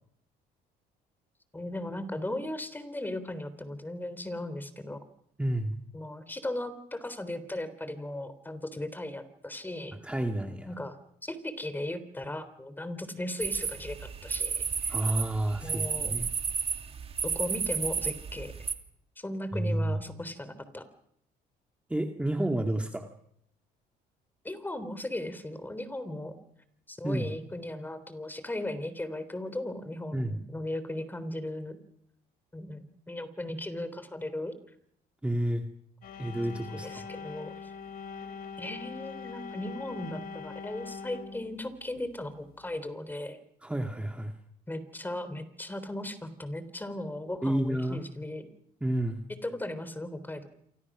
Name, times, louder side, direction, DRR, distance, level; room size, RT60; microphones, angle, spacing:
voice 1, 1.5-5.0 5.9-10.0 10.7-15.1 15.6-16.2 17.2-18.5 19.2-20.9 24.4-26.4 26.9-31.8 32.5-34.5 36.7-37.7 38.6-43.4 44.7-48.5 49.3-50.5, left 1 dB, 10° left, 12 dB, 3.5 m, -37 dB
voice 2, 5.4-5.8 10.0-10.7 14.9-16.3 19.5-20.0 21.9-23.1 27.0-27.3 30.1-30.4 35.2-35.7 36.2-37.0 43.6-44.3 47.4-48.0 48.8-49.2, right 1 dB, 5° right, 4 dB, 2.1 m, -30 dB
sound 1, 13.4-18.7, right 6 dB, 35° right, 2.6 m, -32 dB
sound 2, 36.0-42.8, left 5 dB, 60° left, 3.4 m, -42 dB
28.0 x 25.0 x 6.2 m, 0.70 s
cardioid pair, 110°, 17 cm